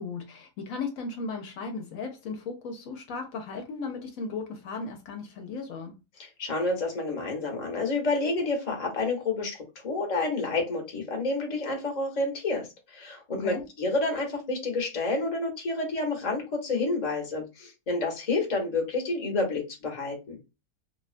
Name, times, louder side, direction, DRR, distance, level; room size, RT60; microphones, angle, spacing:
voice 1, 0.0-6.0 13.3-13.6, left 4 dB, 75° left, 1.0 m, -36 dB
voice 2, 6.4-20.4, left 3 dB, 35° left, 0.8 m, -29 dB
2.8 x 2.2 x 2.4 m
omnidirectional pair, 1.5 m